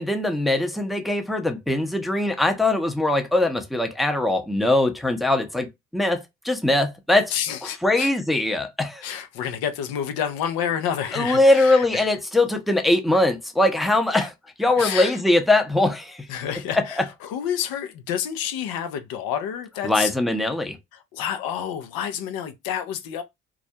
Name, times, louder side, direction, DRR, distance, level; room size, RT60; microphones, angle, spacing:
voice 1, 0.0-5.7 5.9-7.3 7.6-9.0 11.1-14.3 14.6-16.3 16.7-17.1 19.8-20.8, left 2 dB, ahead, 0.6 m, -21 dB
voice 2, 7.3-8.1 9.0-12.1 14.1-14.3 14.8-15.2 16.3-20.1 20.9-23.2, left 9 dB, 75° left, 0.6 m, -29 dB
2.3 x 2.0 x 2.7 m
hypercardioid pair, 55°, 36 cm